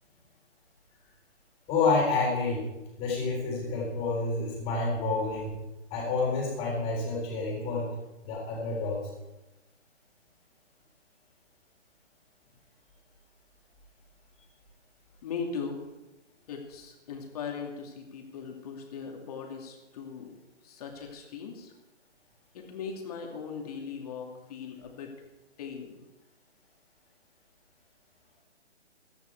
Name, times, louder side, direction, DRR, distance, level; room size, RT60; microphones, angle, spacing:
voice 1, 1.7-2.7 3.0-5.6 5.9-7.9 8.2-9.0, left 3 dB, 15° left, -2 dB, 3.9 m, -28 dB
voice 2, 15.2-15.8 16.5-20.3 20.6-21.7 22.5-25.1 25.6-26.0, left 6 dB, 30° left, 2 dB, 2.7 m, -39 dB
17.5 x 13.0 x 4.7 m, 1.0 s
figure-of-eight pair, 150°, 35 cm